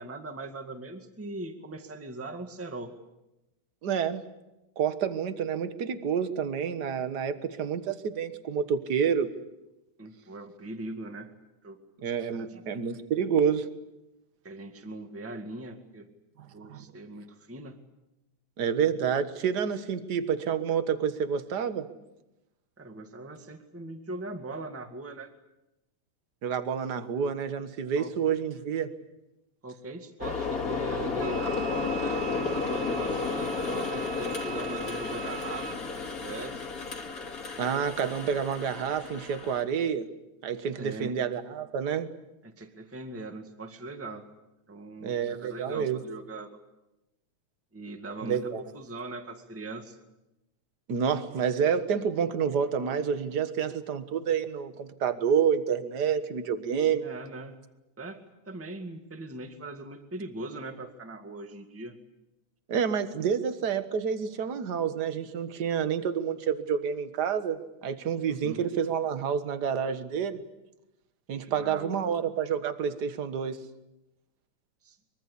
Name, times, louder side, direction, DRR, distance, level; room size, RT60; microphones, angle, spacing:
voice 1, 0.0-2.9 10.0-11.3 11.6-11.8 12.3-12.6 14.4-16.1 16.5-17.8 22.8-25.3 27.9-28.4 29.6-36.6 40.8-41.2 42.4-44.3 44.7-46.5 47.7-50.0 56.9-57.6 58.0-58.2 58.4-61.9 68.3-68.6 71.5-72.2 74.8-75.0, right 2 dB, 5° right, 6 dB, 1.4 m, -40 dB
voice 2, 3.8-4.2 4.8-9.3 12.0-13.7 16.6-16.9 18.6-21.9 26.4-28.9 37.6-40.1 40.4-42.1 45.0-46.0 48.2-48.6 50.9-57.0 62.7-70.4 71.3-73.6, right 7 dB, 45° right, 10 dB, 1.5 m, -28 dB
sound 1, 30.2-39.6, left 4 dB, 30° left, 2.6 m, -32 dB
Wind instrument woodwind instrument, 31.2-35.8, right 8 dB, 70° right, 2.8 m, -41 dB
24.0 x 24.0 x 8.4 m, 0.94 s
omnidirectional pair, 3.4 m